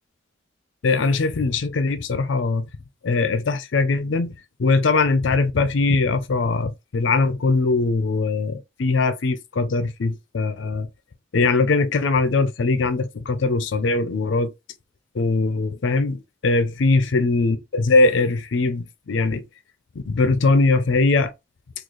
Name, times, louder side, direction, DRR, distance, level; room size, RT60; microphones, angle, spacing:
voice 1, 0.8-2.6 3.0-4.3 4.6-10.9 11.3-14.5 15.1-19.4 20.1-21.3, left 3 dB, 65° left, 0.5 m, -21 dB
3.8 x 2.4 x 3.0 m
head